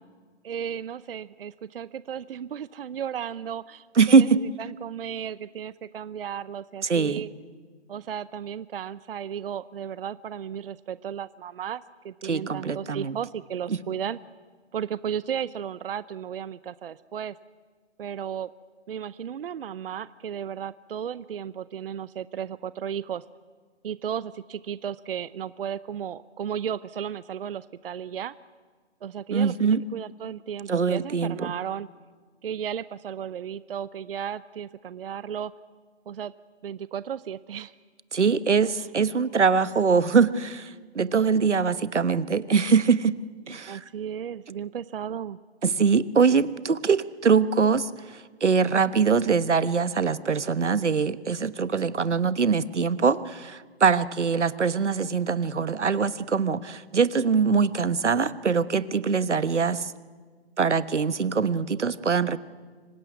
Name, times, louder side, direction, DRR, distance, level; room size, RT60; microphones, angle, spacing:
voice 1, 0.4-7.3 7.9-14.2 14.7-17.4 18.0-18.5 18.9-23.2 23.8-28.3 29.0-31.9 32.4-35.5 36.1-36.3 36.6-37.7 43.7-45.4, right 8 dB, 55° right, 17 dB, 0.7 m, -34 dB
voice 2, 4.0-4.4 6.8-7.2 12.2-13.2 13.7-13.8 29.3-29.8 30.7-31.5 38.1-43.1 43.5-43.8 45.6-59.9 60.6-62.4, right 5 dB, 90° right, 15 dB, 1.2 m, -23 dB
25.0 x 18.0 x 9.5 m, 1.5 s
hypercardioid pair, 150°, 34 cm